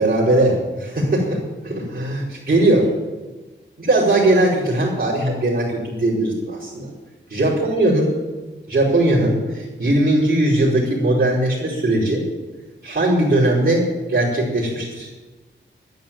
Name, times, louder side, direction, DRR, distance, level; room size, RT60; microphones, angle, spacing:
voice 1, 0.0-2.9 3.8-6.9 7.3-8.1 8.7-12.2 12.8-15.1, right 1 dB, 50° right, -8 dB, 4.9 m, -19 dB
12.0 x 10.5 x 8.9 m, 1.2 s
wide cardioid pair, 140°, 20 cm